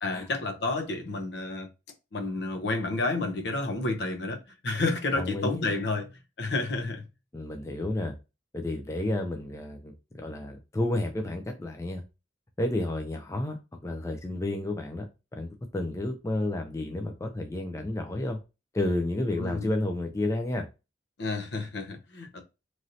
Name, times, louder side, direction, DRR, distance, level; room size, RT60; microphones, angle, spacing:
voice 1, 0.0-1.7 2.1-6.1 6.4-7.0 19.4-19.7 21.2-22.4, left 2 dB, 65° left, 0.7 m, -30 dB
voice 2, 5.1-5.7 7.3-8.2 8.5-12.0 12.6-15.1 15.3-18.4 18.7-20.6, left 1 dB, 15° left, 0.3 m, -31 dB
3.0 x 2.6 x 2.6 m
head